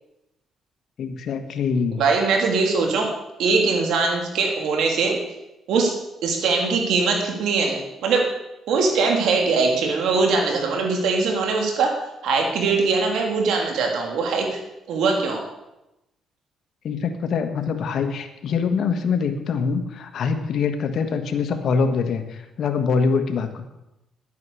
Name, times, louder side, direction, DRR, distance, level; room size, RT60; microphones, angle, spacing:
voice 1, 1.0-2.0 16.8-23.6, left 5 dB, 65° left, 6 dB, 1.5 m, -24 dB
voice 2, 2.0-3.1 3.4-5.2 5.7-5.9 6.2-8.3 8.7-11.9 12.2-14.6 14.9-15.4, right 4 dB, 80° right, 2 dB, 3.0 m, -21 dB
11.0 x 9.4 x 7.1 m, 0.93 s
cardioid pair, 90°, 0 cm